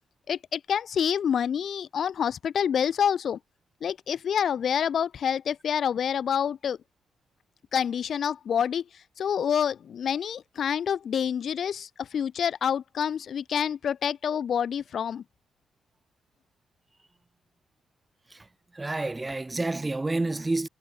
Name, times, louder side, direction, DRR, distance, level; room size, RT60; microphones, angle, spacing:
voice 1, 0.3-3.4 3.8-6.8 7.7-15.2, left 8 dB, 55° left, 7.5 m, -27 dB
voice 2, 18.7-20.7, right 2 dB, 15° right, 6.1 m, -29 dB
cardioid pair, 90°, 0 cm